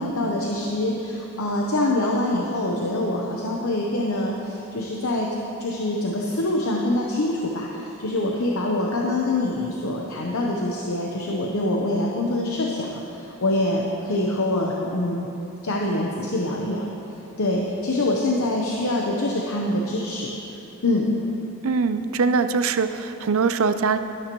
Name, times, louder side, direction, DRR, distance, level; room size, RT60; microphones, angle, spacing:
voice 1, 0.0-5.3 5.6-15.3 15.6-16.9 17.4-21.1, left 1 dB, 75° left, -1 dB, 0.9 m, -25 dB
voice 2, 21.6-24.0, right 5 dB, 70° right, 10 dB, 0.5 m, -22 dB
13.0 x 12.0 x 3.1 m, 2.9 s
head